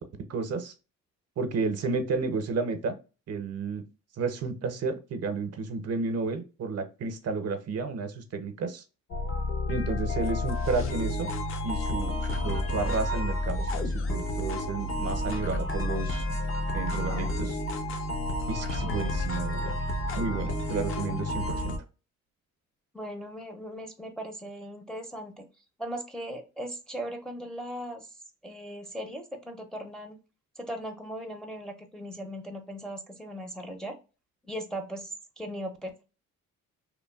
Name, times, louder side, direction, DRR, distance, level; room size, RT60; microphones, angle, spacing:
voice 1, 0.3-0.7 1.4-3.0 3.3-3.8 4.2-8.8 9.7-11.3 11.6-16.4 16.7-17.6 18.5-19.8 20.2-21.8, right 4 dB, 55° right, 8 dB, 0.6 m, -32 dB
sound 1, 9.1-21.8, left 1 dB, 45° left, 0.6 m, -30 dB
voice 2, 22.9-25.5 25.8-28.1 28.4-30.2 30.6-33.9 34.5-36.0, equal, ahead, 2 dB, 0.5 m, -38 dB
3.0 x 2.1 x 2.2 m, 0.31 s
cardioid pair, 90°, 30 cm